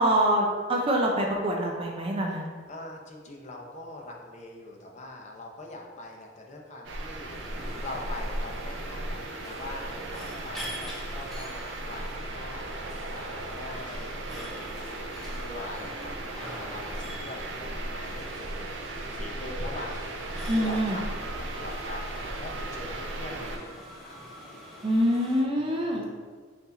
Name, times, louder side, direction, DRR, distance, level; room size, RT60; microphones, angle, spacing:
voice 1, 0.0-2.5 20.5-21.0 24.8-26.1, right 1 dB, 30° right, 0 dB, 0.4 m, -25 dB
voice 2, 2.7-14.9 15.4-20.0 20.5-24.2 25.6-26.1, left 2 dB, 40° left, 0 dB, 0.6 m, -43 dB
sound 1, 6.8-23.6, right 1 dB, 75° right, 0.5 m, -36 dB
sound 2, 7.3-25.4, equal, ahead, 0.7 m, -45 dB
4.6 x 2.6 x 4.0 m, 1.5 s
head